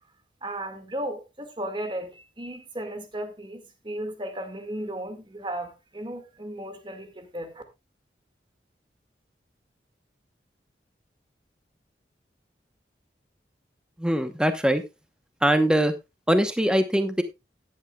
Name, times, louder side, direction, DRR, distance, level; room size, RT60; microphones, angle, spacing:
voice 1, 0.4-7.6, right 1 dB, 25° right, 2.0 m, -35 dB
voice 2, 14.0-14.8 15.4-15.9 16.3-17.2, equal, 5° right, 0.9 m, -22 dB
14.5 x 11.0 x 2.3 m
head